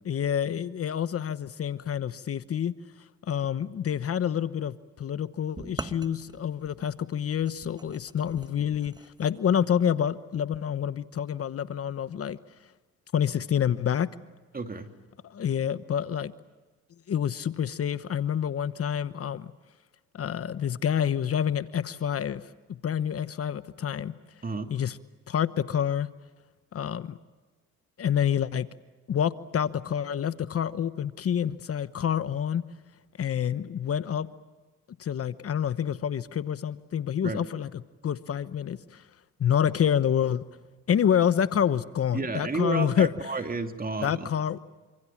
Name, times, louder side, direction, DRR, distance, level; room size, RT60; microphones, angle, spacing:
voice 1, 0.0-2.7 3.3-12.4 13.1-14.1 15.2-16.3 17.1-19.5 20.1-22.4 22.7-24.1 24.7-25.0 25.3-26.1 26.7-27.2 28.0-28.7 29.1-32.6 33.2-34.3 35.0-39.0 39.4-40.4 40.9-43.1 44.0-44.6, left 9 dB, 50° left, 1.0 m, -27 dB
sound 1, 5.6-9.4, right 2 dB, 15° right, 1.2 m, -43 dB
voice 2, 14.5-14.9 24.4-24.7 37.2-37.4 42.1-44.3, right 3 dB, 30° right, 2.8 m, -31 dB
28.5 x 26.5 x 7.3 m
cardioid pair, 90°, 30 cm